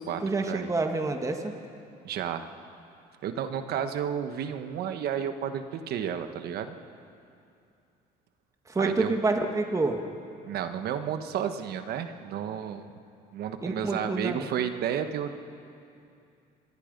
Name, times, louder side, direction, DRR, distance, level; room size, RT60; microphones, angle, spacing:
voice 1, 0.0-1.5 8.7-10.0 13.6-14.5, right 3 dB, 20° right, 4 dB, 1.6 m, -28 dB
voice 2, 2.0-2.5 3.2-6.8 8.8-9.2 10.4-12.9 13.3-15.5, right 9 dB, 70° right, 8 dB, 1.4 m, -32 dB
26.0 x 22.5 x 5.3 m, 2.6 s
cardioid pair, 110°, 17 cm